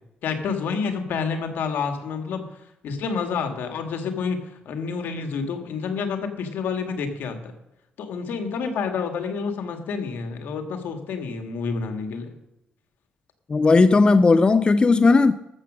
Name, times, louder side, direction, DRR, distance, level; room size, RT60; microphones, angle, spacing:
voice 1, 0.2-2.4 2.8-4.4 4.6-7.5 8.0-12.3, left 5 dB, 80° left, 1.7 m, -28 dB
voice 2, 13.5-15.3, left 3 dB, 30° left, 0.5 m, -16 dB
13.0 x 7.3 x 6.1 m
cardioid pair, 95°, 3 cm